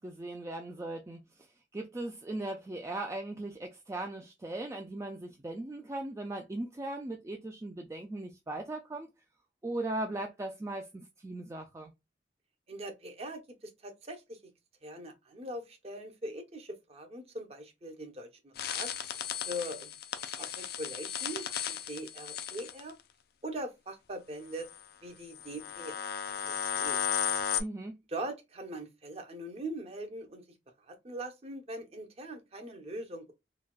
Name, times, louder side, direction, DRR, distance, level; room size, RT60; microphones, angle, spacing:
voice 1, 0.0-9.1 9.6-11.9 27.6-27.9, right 2 dB, 15° right, 0.3 m, -38 dB
voice 2, 12.7-14.4 14.8-18.9 19.5-19.9 20.4-22.9 23.4-24.7 25.0-25.9 26.3-27.0 28.1-30.4 30.9-33.3, right 1 dB, 35° right, 0.7 m, -41 dB
sound 1, 18.6-22.9 24.6-24.8 25.4-27.6, left 9 dB, 60° left, 0.4 m, -35 dB
4.0 x 2.2 x 2.2 m
head